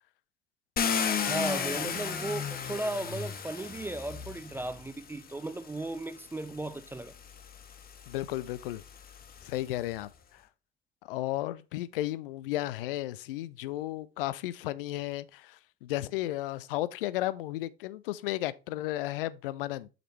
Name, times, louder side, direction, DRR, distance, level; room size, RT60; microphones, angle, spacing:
Car, 0.8-4.9 5.8-5.9 6.4-9.7, left 6 dB, 30° left, 1.0 m, -34 dB
voice 1, 1.2-7.1, right 2 dB, 10° right, 0.3 m, -36 dB
voice 2, 8.1-8.8 9.4-10.4 11.0-19.9, left 15 dB, 70° left, 0.4 m, -34 dB
5.9 x 5.1 x 3.2 m
figure-of-eight pair, 60°, 29 cm